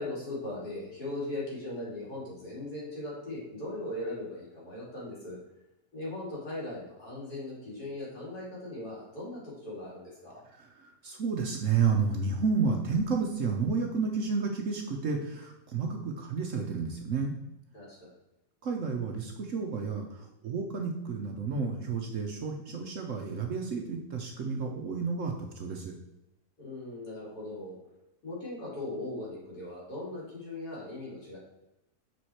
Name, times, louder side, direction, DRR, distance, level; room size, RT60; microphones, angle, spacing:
voice 1, 0.0-5.4 5.9-10.4 17.7-18.1 26.6-27.8 28.2-31.4, left 2 dB, 70° left, -7 dB, 3.4 m, -39 dB
voice 2, 10.6-17.3 18.6-25.9, right 5 dB, 60° right, 2 dB, 1.0 m, -31 dB
6.2 x 4.8 x 4.3 m, 0.92 s
omnidirectional pair, 1.8 m